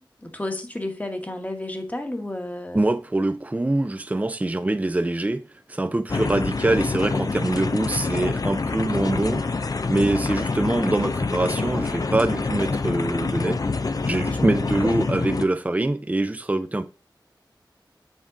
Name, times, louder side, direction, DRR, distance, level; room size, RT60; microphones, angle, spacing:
voice 1, 0.2-2.8 6.1-6.3 10.0-10.2 14.3-14.9, left 1 dB, 20° left, 1.2 m, -32 dB
voice 2, 2.7-5.4 5.7-13.6 14.0-16.9, right 2 dB, 20° right, 0.5 m, -24 dB
sound 1, 6.1-15.5, left 4 dB, 50° left, 0.5 m, -26 dB
7.3 x 3.6 x 3.7 m
wide cardioid pair, 65°, 8 cm